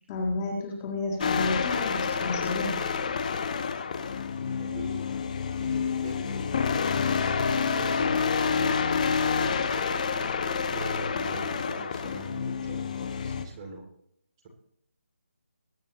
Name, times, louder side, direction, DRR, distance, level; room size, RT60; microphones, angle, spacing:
voice 1, 0.1-2.8, left 2 dB, 20° left, 0 dB, 1.7 m, -31 dB
sound 1, 1.2-13.4, left 6 dB, 35° left, 1.0 m, -28 dB
voice 2, 4.3-5.1 5.6-10.1 10.7-13.9, right 2 dB, 20° right, 1 dB, 2.6 m, -41 dB
21.0 x 8.8 x 3.0 m, 0.73 s
figure-of-eight pair, 165°, 7 cm